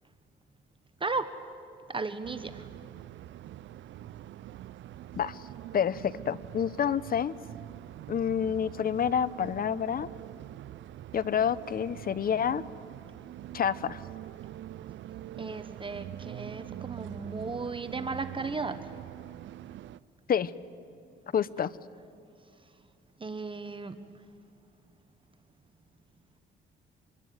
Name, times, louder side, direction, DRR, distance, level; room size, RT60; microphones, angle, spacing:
voice 1, 1.0-1.4 1.9-2.7 15.4-18.9 23.2-24.0, right 3 dB, 25° right, 10 dB, 1.2 m, -35 dB
sound 1, 2.2-20.0, right 13 dB, 70° right, 0.5 m, -44 dB
voice 2, 5.7-7.3 8.1-10.1 11.1-12.7 13.5-14.0 20.3-20.5 21.3-21.7, left 8 dB, 50° left, 18 dB, 0.8 m, -28 dB
26.0 x 21.5 x 9.4 m, 2.4 s
cardioid pair, 90°, 20 cm